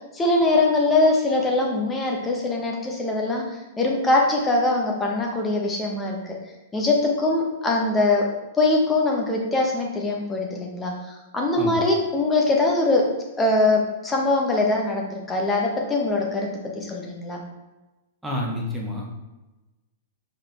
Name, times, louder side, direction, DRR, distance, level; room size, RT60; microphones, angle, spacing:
voice 1, 0.1-3.4 3.8-6.3 6.7-8.3 8.6-10.9 11.3-13.1 13.4-16.5 16.7-17.4, left 2 dB, 15° left, -1 dB, 1.4 m, -22 dB
voice 2, 18.2-19.1, left 1 dB, 5° right, -3 dB, 1.5 m, -28 dB
5.2 x 5.0 x 3.7 m, 1.1 s
figure-of-eight pair, 100°, 0 cm